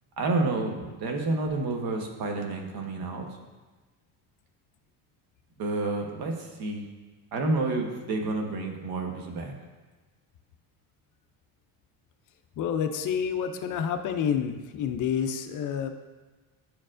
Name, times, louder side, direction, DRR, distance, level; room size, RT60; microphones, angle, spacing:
voice 1, 0.2-3.3 5.6-6.8 7.3-9.5, right 2 dB, 60° right, 2 dB, 1.1 m, -29 dB
voice 2, 12.6-15.9, left 8 dB, 50° left, 7 dB, 0.5 m, -28 dB
10.0 x 4.5 x 2.5 m, 1.2 s
cardioid pair, 135°, 41 cm